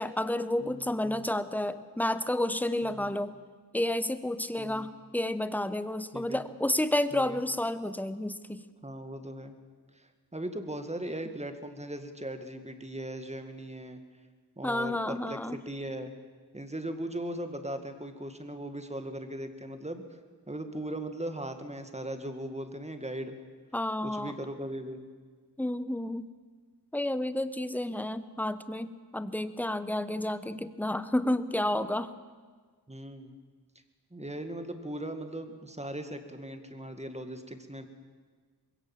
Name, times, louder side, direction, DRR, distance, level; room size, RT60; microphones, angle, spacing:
voice 1, 0.0-3.3 3.7-8.6 14.6-15.6 23.7-24.3 25.6-26.3 26.9-32.1, left 1 dB, 5° left, 13 dB, 1.0 m, -30 dB
voice 2, 0.6-1.3 2.8-3.1 4.6-4.9 6.1-6.4 7.1-7.4 8.8-9.6 10.0-14.0 14.6-16.1 16.5-20.0 20.5-23.4 24.0-25.0 32.9-33.3 34.1-37.9, right 1 dB, 15° right, 7 dB, 2.0 m, -39 dB
21.0 x 17.0 x 7.4 m, 1.5 s
cardioid pair, 55°, 41 cm